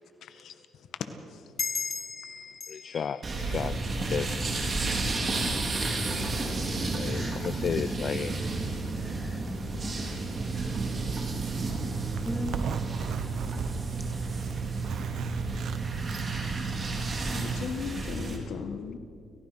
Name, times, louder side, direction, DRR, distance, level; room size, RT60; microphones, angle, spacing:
voice 1, 0.2-0.5 1.0-1.5 17.3-19.0, left 7 dB, 70° left, 8 dB, 1.8 m, -37 dB
sound 1, 1.6-4.7, left 5 dB, 40° left, 1.0 m, -37 dB
voice 2, 2.7-3.8 4.1-4.4 6.8-8.3, left 7 dB, 55° left, 15 dB, 0.5 m, -33 dB
sound 2, 3.2-18.4, right 2 dB, 40° right, 3.8 m, -32 dB
voice 3, 5.7-6.5 7.0-7.9 8.4-9.5 9.9-10.7 12.2-12.6, left 1 dB, 5° left, 4 dB, 2.7 m, -43 dB
Zipper (clothing), 10.3-17.6, right 7 dB, 70° right, 1.0 m, -35 dB
29.5 x 15.5 x 6.0 m, 2.4 s
cardioid pair, 90°, 0 cm